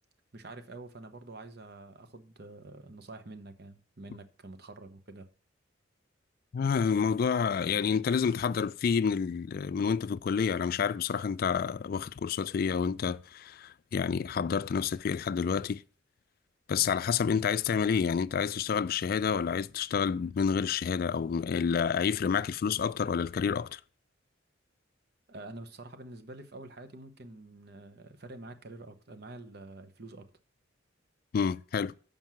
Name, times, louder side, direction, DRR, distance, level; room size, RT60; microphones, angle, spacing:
voice 1, 0.3-5.3 25.3-30.3, right 2 dB, 55° right, 1.0 m, -47 dB
voice 2, 6.5-15.8 16.7-23.8 31.3-31.9, left 6 dB, 50° left, 0.3 m, -29 dB
7.5 x 5.3 x 6.1 m
head